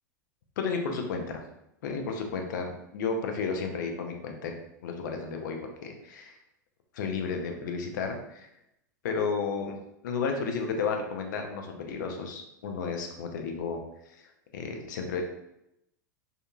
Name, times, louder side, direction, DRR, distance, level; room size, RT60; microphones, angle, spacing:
voice 1, 0.6-1.4 1.8-6.4 6.9-8.5 9.0-9.8 10.0-13.8 14.1-15.2, left 5 dB, 65° left, 4 dB, 0.5 m, -33 dB
2.7 x 2.4 x 2.3 m, 0.83 s
hypercardioid pair, 95°, 11 cm